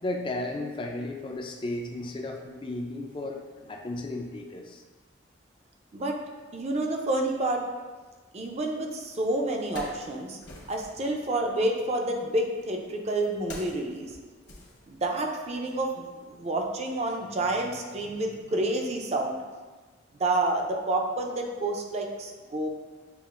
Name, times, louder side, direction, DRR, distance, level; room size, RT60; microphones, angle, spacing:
voice 1, 0.0-4.8, left 2 dB, 25° left, 2 dB, 0.4 m, -34 dB
voice 2, 6.5-7.6 8.3-10.4 10.7-14.1 14.9-19.4 20.2-22.7, right 2 dB, 35° right, 2 dB, 0.5 m, -29 dB
Wood, 9.6-11.1 12.0-15.4 15.7-15.8, left 1 dB, 60° left, 1.0 m, -45 dB
7.0 x 2.4 x 2.5 m, 1.3 s
head